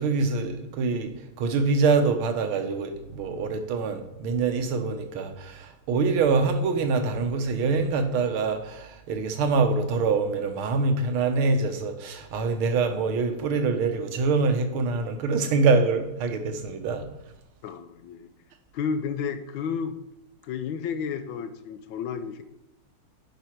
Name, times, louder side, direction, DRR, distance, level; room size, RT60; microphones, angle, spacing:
voice 1, 0.0-17.1, right 4 dB, 80° right, 7 dB, 1.8 m, -25 dB
voice 2, 17.6-18.3 18.7-20.0 20.4-22.4, left 6 dB, 75° left, 10 dB, 1.3 m, -31 dB
10.5 x 5.1 x 4.5 m, 0.88 s
omnidirectional pair, 2.3 m